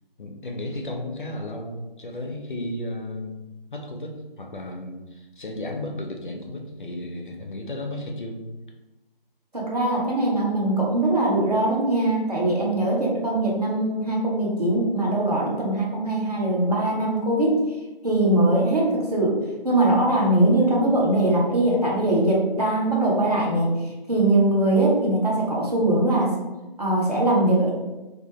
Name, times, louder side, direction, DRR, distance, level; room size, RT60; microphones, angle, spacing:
voice 1, 0.2-3.4 3.7-8.4, left 1 dB, 55° left, 1 dB, 0.4 m, -34 dB
voice 2, 9.5-17.6 18.0-19.4 19.6-23.7 24.1-26.3 26.8-27.7, right 1 dB, 45° right, -4 dB, 0.6 m, -21 dB
2.3 x 2.0 x 2.8 m, 1.1 s
figure-of-eight pair, 170°, 29 cm